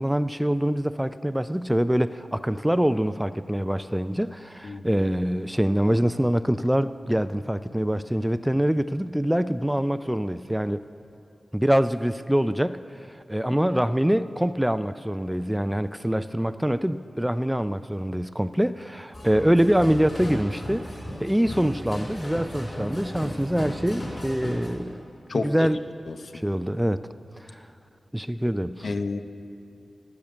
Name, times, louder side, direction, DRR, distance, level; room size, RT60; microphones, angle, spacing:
voice 1, 0.0-10.8 11.5-12.8 13.3-25.0 25.3-25.8 26.3-27.1 27.4-27.7 28.1-28.9, equal, 5° right, 13 dB, 0.3 m, -24 dB
sound 1, 19.1-24.7, equal, 45° left, 3.6 m, -35 dB
voice 2, 25.3-25.7 26.1-26.4 28.8-29.2, left 3 dB, 75° left, 8 dB, 0.7 m, -30 dB
15.5 x 7.1 x 9.7 m, 2.6 s
wide cardioid pair, 100°, 0 cm